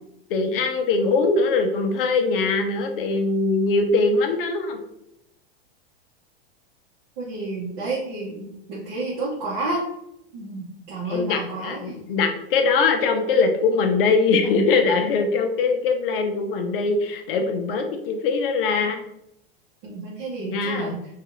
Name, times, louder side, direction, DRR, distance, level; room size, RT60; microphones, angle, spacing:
voice 1, 0.3-4.8 11.1-19.0 20.5-21.0, left 4 dB, 60° left, 5 dB, 0.5 m, -22 dB
voice 2, 7.2-9.9 10.3-12.0 19.8-21.0, right 2 dB, 40° right, -7 dB, 0.7 m, -30 dB
2.6 x 2.4 x 2.9 m, 0.80 s
supercardioid pair, 155°, 31 cm